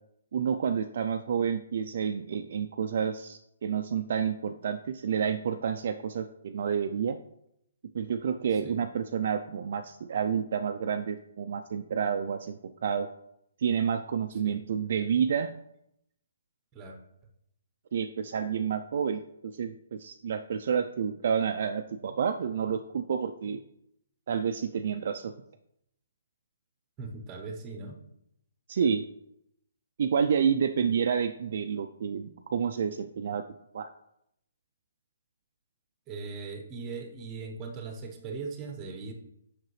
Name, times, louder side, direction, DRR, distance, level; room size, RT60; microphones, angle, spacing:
voice 1, 0.3-7.2 7.9-13.1 13.6-15.5 17.9-23.6 24.3-25.3 28.7-29.0 30.0-33.4 33.7-33.9, right 7 dB, 45° right, 7 dB, 0.3 m, -29 dB
voice 2, 27.0-28.0 36.1-39.1, right 4 dB, 15° right, 4 dB, 0.7 m, -39 dB
7.5 x 5.8 x 3.1 m, 0.78 s
hypercardioid pair, 175°, 0 cm